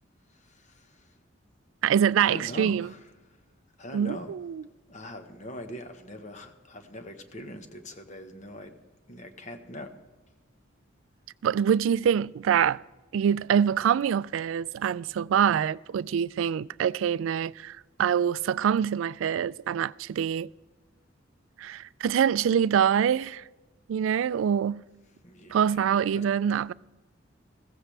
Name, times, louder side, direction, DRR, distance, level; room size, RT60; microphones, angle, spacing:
voice 1, 0.3-1.1 2.2-3.0 3.8-4.3 4.9-8.8 9.1-9.9 25.2-26.2, left 1 dB, 40° left, 1.2 m, -42 dB
voice 2, 1.8-2.9 3.9-4.6 11.4-12.8 13.1-20.5 21.6-23.4 23.9-24.8 25.5-26.7, right 8 dB, 75° right, 0.3 m, -25 dB
15.5 x 15.0 x 3.3 m
head